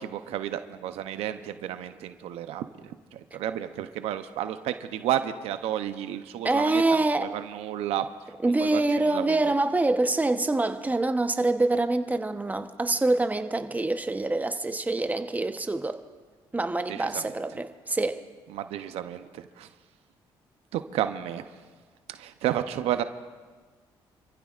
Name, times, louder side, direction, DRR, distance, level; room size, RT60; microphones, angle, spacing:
voice 1, 0.0-8.1 8.4-9.5 16.9-17.3 18.5-19.7 20.7-21.5 22.1-23.0, right 11 dB, 80° right, 10 dB, 0.7 m, -32 dB
voice 2, 6.4-7.3 8.4-16.0 16.5-18.2, right 2 dB, 15° right, 8 dB, 0.9 m, -25 dB
27.5 x 15.0 x 2.5 m, 1.4 s
supercardioid pair, 70°, 10 cm